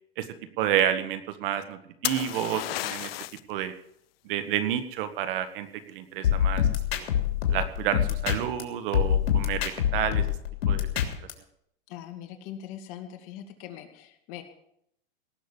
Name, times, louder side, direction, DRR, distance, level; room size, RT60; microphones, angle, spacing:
voice 1, 0.6-3.1 3.5-3.7 4.2-6.7 6.9-7.1 7.5-10.2 10.7-10.9, right 10 dB, 60° right, 11 dB, 1.8 m, -29 dB
sound 1, 2.0-3.5 7.2-7.6, left 17 dB, 70° left, 0.6 m, -32 dB
sound 2, 6.2-8.6 8.9-11.3, left 10 dB, 85° left, 3.2 m, -25 dB
voice 2, 11.9-14.4, left 10 dB, 45° left, 6 dB, 2.3 m, -41 dB
18.0 x 6.6 x 8.5 m, 0.72 s
supercardioid pair, 145°, 30 cm